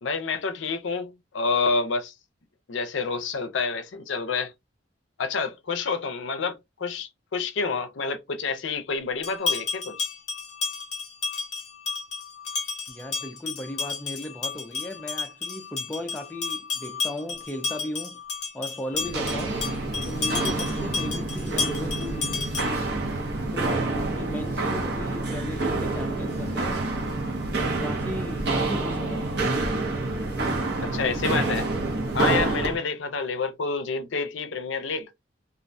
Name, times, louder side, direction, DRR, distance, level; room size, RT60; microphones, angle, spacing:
voice 1, 0.0-2.1 2.7-4.5 5.2-10.1 30.8-31.7 32.1-35.1, left 4 dB, 75° left, 0.5 m, -28 dB
sound 1, 9.2-22.9, left 4 dB, 35° left, 0.7 m, -32 dB
voice 2, 12.9-18.2 18.5-19.6 20.1-22.3 23.5-26.9 27.5-29.3, left 1 dB, 10° left, 0.3 m, -36 dB
Walk footsteps, 19.0-32.8, right 2 dB, 55° right, 0.8 m, -27 dB
2.4 x 2.2 x 2.5 m
head